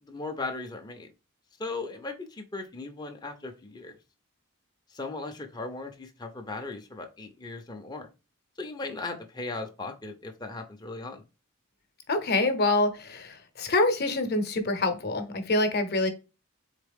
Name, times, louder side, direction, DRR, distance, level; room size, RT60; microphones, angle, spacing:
voice 1, 0.0-1.1 1.6-4.0 4.9-8.1 8.6-11.2, left 3 dB, 20° left, 0.5 m, -37 dB
voice 2, 12.1-16.1, left 2 dB, 45° left, 0.8 m, -26 dB
3.9 x 3.6 x 3.5 m
head